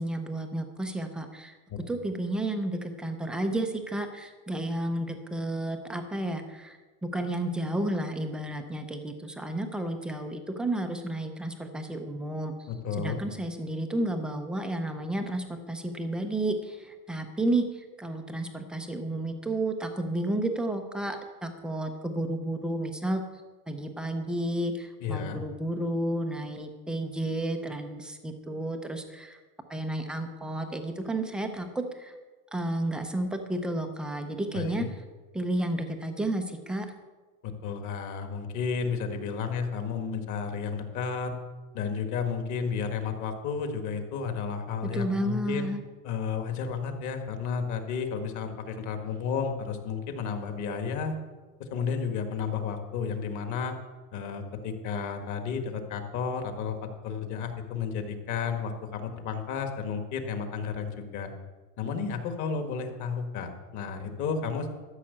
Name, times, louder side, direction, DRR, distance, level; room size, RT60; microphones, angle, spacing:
voice 1, 0.0-1.6 1.9-12.5 13.0-23.2 23.7-29.4 29.7-32.1 32.5-34.8 35.3-36.9 44.8-45.8, right 1 dB, ahead, 5 dB, 0.4 m, -32 dB
voice 2, 12.7-13.2 25.0-25.4 34.5-34.9 37.4-41.3 41.7-45.7 46.0-51.1 51.7-53.7 54.1-61.3 61.8-64.7, left 6 dB, 40° left, 6 dB, 1.6 m, -32 dB
13.0 x 6.3 x 8.3 m, 1.3 s
supercardioid pair, 150°, 46 cm